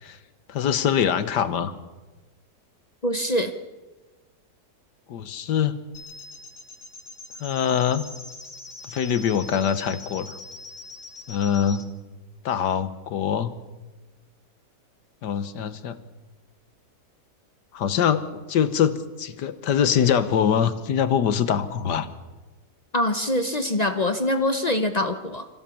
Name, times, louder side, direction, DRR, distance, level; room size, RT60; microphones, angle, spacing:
voice 1, 0.5-1.7 5.1-5.8 7.4-8.0 8.9-10.4 11.3-11.9 12.4-13.5 15.2-16.0 17.7-18.2 18.5-22.1, left 8 dB, 80° left, 12 dB, 1.7 m, -23 dB
voice 2, 3.0-3.5 22.9-25.5, left 1 dB, 35° left, 8 dB, 0.7 m, -24 dB
sound 1, 5.9-11.9, left 2 dB, 55° left, 2.2 m, -42 dB
26.5 x 15.5 x 7.1 m, 1.2 s
omnidirectional pair, 1.8 m